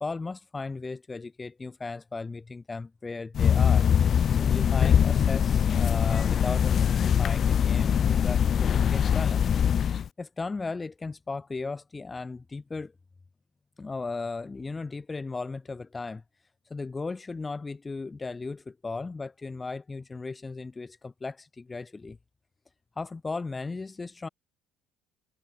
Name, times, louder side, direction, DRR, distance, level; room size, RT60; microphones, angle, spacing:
voice 1, 0.0-9.4 9.8-12.9 13.8-16.2 16.7-22.2 23.0-24.3, left 3 dB, 15° left, 1.6 m, -36 dB
sound 1, 3.3-10.1, left 8 dB, 35° left, 0.4 m, -22 dB
cardioid pair, 150°, 0 cm